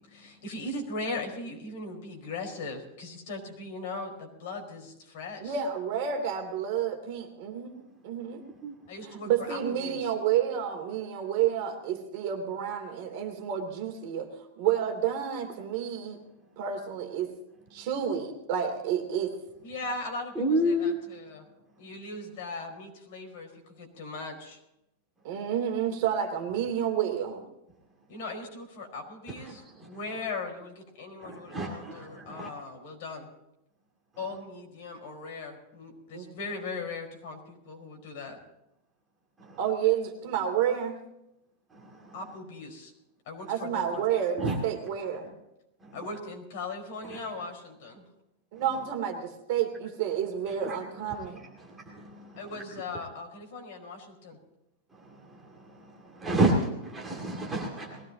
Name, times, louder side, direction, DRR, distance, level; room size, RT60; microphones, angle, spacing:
voice 1, 0.1-5.6 8.9-10.1 19.6-21.5 21.8-24.6 28.1-33.3 34.2-38.4 42.1-42.9 43.2-44.0 45.9-48.0 52.3-54.4, left 3 dB, 50° left, 3 dB, 4.8 m, -39 dB
voice 2, 5.4-8.4 9.0-14.3 14.6-16.2 16.6-17.3 17.7-19.3 25.2-27.5 36.1-36.2 39.6-41.0 43.5-45.3 48.5-51.4, right 9 dB, 40° right, 4 dB, 2.8 m, -30 dB
voice 3, 20.4-20.9 31.2-32.5 44.4-44.5 51.9-52.1 56.2-58.0, right 1 dB, 10° right, -2 dB, 2.2 m, -28 dB
21.5 x 17.0 x 2.9 m, 0.85 s
supercardioid pair, 180°, 0 cm